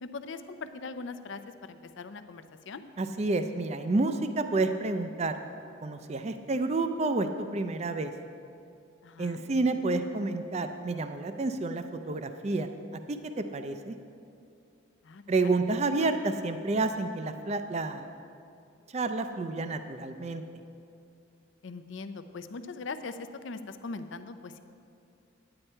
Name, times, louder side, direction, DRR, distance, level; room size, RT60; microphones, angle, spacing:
voice 1, 0.0-2.8 9.0-9.4 15.0-15.5 21.6-24.6, left 4 dB, 65° left, 10 dB, 0.5 m, -41 dB
voice 2, 3.0-5.4 5.8-7.3 7.5-8.1 9.2-12.7 13.1-14.0 15.3-18.1 18.9-20.4, right 3 dB, 30° right, 8 dB, 0.4 m, -29 dB
9.8 x 9.7 x 4.4 m, 2.5 s
head